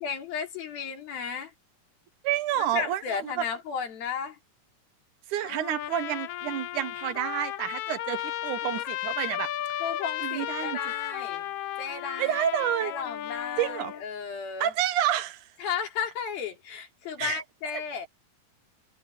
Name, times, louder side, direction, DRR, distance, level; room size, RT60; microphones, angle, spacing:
voice 1, 0.0-1.5 2.7-4.4 9.8-11.5 11.8-12.4 12.8-14.7 15.6-18.1, left 7 dB, 90° left, 5.2 m, -34 dB
voice 2, 2.2-3.4 5.3-9.5 10.2-10.8 12.2-12.9 13.6-13.9 14.6-15.5 17.2-17.4, right 11 dB, 70° right, 2.2 m, -29 dB
Trumpet, 5.4-14.0, left 13 dB, 70° left, 1.9 m, -34 dB
omnidirectional pair, 4.1 m